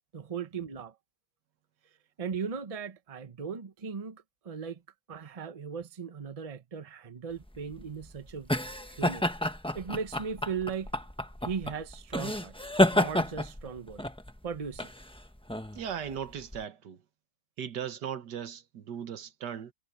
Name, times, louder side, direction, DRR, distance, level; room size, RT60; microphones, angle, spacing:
voice 1, 0.1-1.0 2.2-4.8 5.1-8.5 8.9-9.3 9.7-10.9 11.4-12.6 12.9-14.1 14.4-14.9, right 6 dB, 25° right, 0.9 m, -37 dB
sound 1, 7.4-16.6, left 1 dB, 5° left, 0.8 m, -30 dB
voice 2, 15.7-17.0 17.6-19.7, right 8 dB, 85° right, 1.8 m, -38 dB
omnidirectional pair, 1.8 m